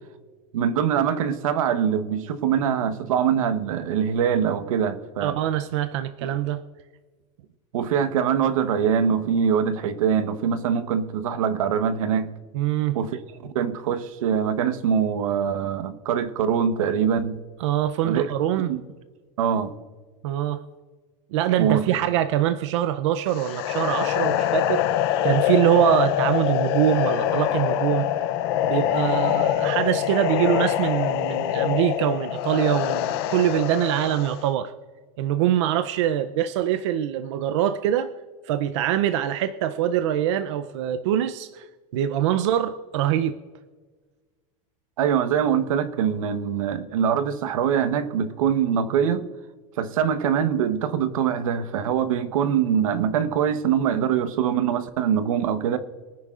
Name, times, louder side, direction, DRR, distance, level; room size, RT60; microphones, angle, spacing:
voice 1, 0.5-5.4 6.2-6.3 7.7-12.3 12.9-13.2 13.5-17.4 18.0-18.3 18.7-18.8 19.4-19.8 21.6-21.9 45.0-49.2 49.8-55.8, right 8 dB, 90° right, 10 dB, 1.1 m, -23 dB
voice 2, 5.2-6.6 12.5-13.0 17.6-18.7 20.2-20.6 21.3-24.9 25.2-28.1 28.6-34.7 35.2-38.1 38.5-41.7 41.9-43.3, right 11 dB, 60° right, 10 dB, 0.5 m, -23 dB
sound 1, 23.3-34.4, left 11 dB, 45° left, 0.6 m, -24 dB
23.5 x 10.5 x 2.5 m, 1.4 s
supercardioid pair, 175°, 17 cm